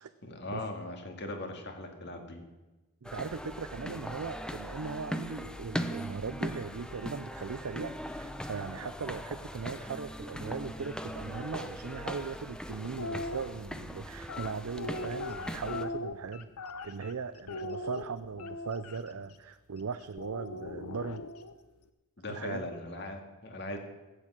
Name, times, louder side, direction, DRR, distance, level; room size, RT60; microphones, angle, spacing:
voice 1, 0.2-2.4 22.2-23.8, left 1 dB, 50° left, 4 dB, 2.2 m, -39 dB
sound 1, 3.0-15.8, equal, 5° left, 0.6 m, -40 dB
voice 2, 3.0-16.5 16.8-21.2 22.3-22.7, right 5 dB, 80° right, 10 dB, 0.6 m, -39 dB
sound 2, 12.8-13.4 14.2-17.1 17.5-19.0 20.2-21.5, left 2 dB, 85° left, 0.9 m, -39 dB
16.0 x 8.5 x 7.5 m, 1.1 s
head